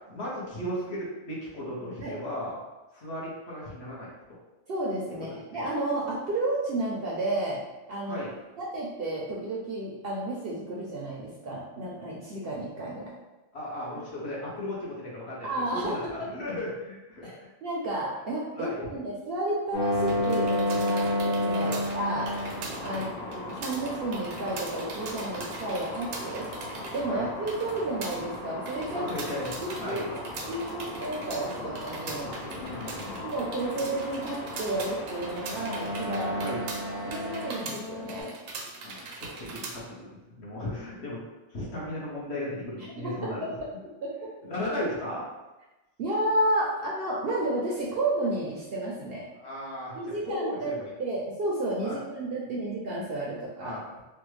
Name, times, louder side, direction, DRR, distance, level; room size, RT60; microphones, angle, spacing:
voice 1, 0.1-2.6 2.9-4.1 8.1-8.3 13.5-17.3 18.6-18.8 21.6-21.8 22.9-23.1 27.1-27.3 28.9-30.1 32.5-33.3 36.4-36.6 38.8-41.2 41.5-43.6 44.4-45.2 49.4-49.9 50.2-50.9 51.8-51.9 53.6-53.8, left 1 dB, 55° left, -5 dB, 1.1 m, -36 dB
voice 2, 4.7-7.6 7.9-8.2 8.6-13.1 15.4-16.3 17.2-22.3 22.8-26.5 26.9-29.1 29.6-32.3 33.2-36.5 37.0-38.3 42.8-43.1 43.4-43.6 44.0-44.1 46.0-49.2 49.9-50.7 51.0-53.8, right 1 dB, 60° right, -5 dB, 0.7 m, -32 dB
sound 1, 19.7-38.2, left 1 dB, 85° left, 1.2 m, -33 dB
sound 2, 20.0-39.8, right 3 dB, 75° right, 1.0 m, -42 dB
3.3 x 2.2 x 3.1 m, 1.1 s
omnidirectional pair, 1.4 m